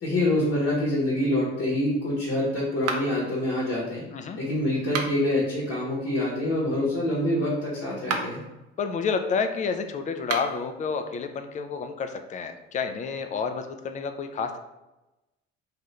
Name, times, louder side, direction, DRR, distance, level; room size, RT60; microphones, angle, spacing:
voice 1, 0.0-4.0 4.4-8.4, left 1 dB, 40° left, -4 dB, 1.0 m, -26 dB
sound 1, 2.8-3.3 4.8-5.4 7.9-8.5 10.2-10.7, right 4 dB, 50° right, 0.5 m, -32 dB
voice 2, 8.8-14.6, left 5 dB, 25° left, 7 dB, 0.3 m, -30 dB
2.7 x 2.5 x 3.1 m, 0.99 s
hypercardioid pair, 60°, 33 cm